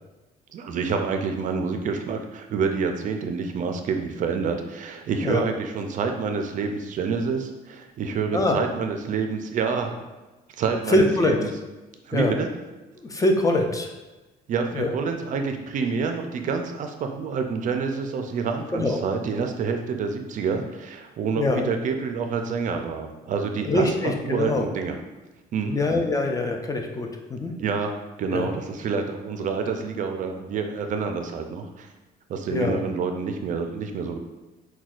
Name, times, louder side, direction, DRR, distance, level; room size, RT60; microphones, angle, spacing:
voice 1, 0.5-10.0 10.6-11.5 12.1-12.5 14.5-25.0 25.5-25.8 27.6-31.9 32.3-34.2, right 5 dB, 50° right, 5 dB, 0.4 m, -28 dB
voice 2, 10.9-11.4 12.1-12.3 13.0-13.9 14.7-14.9 18.7-19.0 21.4-21.7 23.6-24.7 25.7-27.5 28.3-28.5 32.5-32.8, left 2 dB, 20° left, 3 dB, 0.4 m, -23 dB
5.9 x 2.2 x 2.4 m, 1.1 s
cardioid pair, 110°, 17 cm